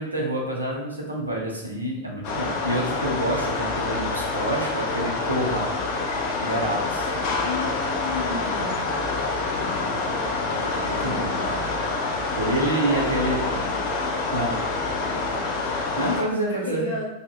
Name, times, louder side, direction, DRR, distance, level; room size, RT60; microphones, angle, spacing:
voice 1, 0.0-5.7 6.4-7.1 9.8-10.0 10.5-11.6 12.1-13.5 14.3-14.6 16.0-17.0, right 1 dB, 80° right, -1 dB, 0.6 m, -28 dB
sound 1, 2.2-16.2, left 3 dB, 45° left, 0.5 m, -27 dB
voice 2, 7.4-8.8 9.4-10.1 10.9-11.6 12.8-13.7 14.9-15.6 16.6-17.1, left 3 dB, 70° left, -6 dB, 0.7 m, -34 dB
3.7 x 2.0 x 2.2 m, 0.91 s
figure-of-eight pair, 90°, 0 cm